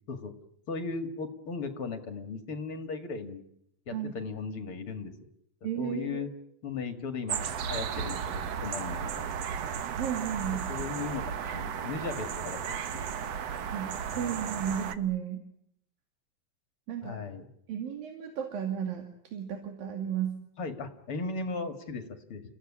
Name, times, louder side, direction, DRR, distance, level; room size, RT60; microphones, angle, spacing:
voice 1, 0.7-3.4 3.9-5.1 5.8-6.3 6.6-9.3 10.7-13.1 14.1-14.3 17.0-17.5 20.6-22.5, left 4 dB, 45° left, 7 dB, 2.7 m, -37 dB
voice 2, 5.6-6.3 9.9-10.6 13.7-15.4 16.9-17.2 17.7-19.1 19.3-20.4, right 9 dB, 85° right, 4 dB, 4.3 m, -33 dB
sound 1, 7.3-14.9, right 7 dB, 60° right, 1.9 m, -34 dB
29.5 x 16.5 x 10.0 m, 0.77 s
omnidirectional pair, 4.0 m